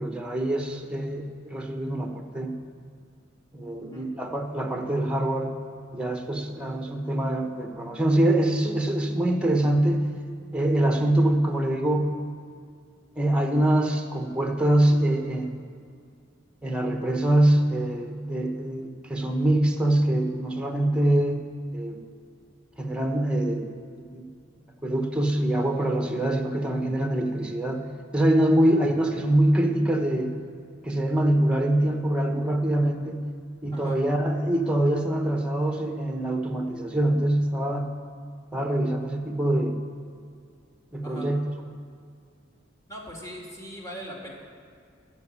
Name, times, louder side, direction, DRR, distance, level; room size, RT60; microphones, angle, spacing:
voice 1, 0.0-2.6 3.5-5.5 5.9-10.0 10.5-12.1 13.2-15.6 16.6-21.4 21.7-22.0 22.8-24.3 24.8-27.8 28.1-30.3 30.8-33.3 33.6-37.9 38.5-39.8 40.9-41.4, right 1 dB, 5° right, 4 dB, 1.0 m, -24 dB
voice 2, 42.9-44.3, equal, 15° left, -2 dB, 2.3 m, -40 dB
14.0 x 5.3 x 8.7 m, 2.2 s
head